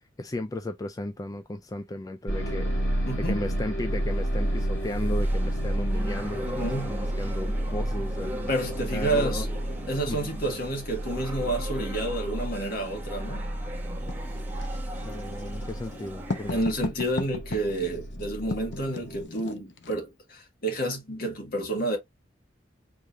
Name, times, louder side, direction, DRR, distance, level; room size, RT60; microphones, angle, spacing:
voice 1, 0.2-8.3 8.9-9.5 10.1-10.2 15.0-16.6, left 1 dB, 20° left, 0.4 m, -35 dB
sound 1, 2.3-19.2, right 1 dB, 90° left, 2.6 m, -31 dB
voice 2, 3.1-3.4 6.4-6.9 8.5-9.5 9.9-13.5 16.5-22.0, right 1 dB, 55° left, 1.9 m, -29 dB
sound 2, 3.9-16.6, right 1 dB, 10° right, 1.3 m, -41 dB
Writing, 14.1-20.0, left 3 dB, 70° left, 0.8 m, -37 dB
4.9 x 3.5 x 2.5 m
head